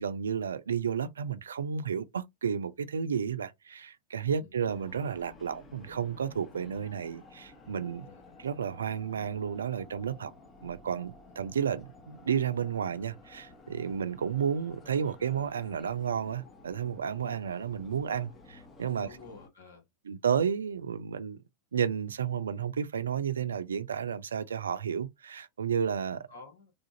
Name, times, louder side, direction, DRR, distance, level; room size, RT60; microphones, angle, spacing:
voice 1, 0.0-8.1 8.4-10.3 10.6-19.1 20.0-21.4 21.7-26.3, right 7 dB, 85° right, 0.4 m, -32 dB
sound 1, 4.7-19.5, left 3 dB, 30° left, 1.0 m, -53 dB
voice 2, 8.0-8.3 19.0-19.9 26.3-26.7, left 4 dB, 75° left, 1.5 m, -51 dB
3.4 x 2.5 x 2.6 m
hypercardioid pair, 95°, 0 cm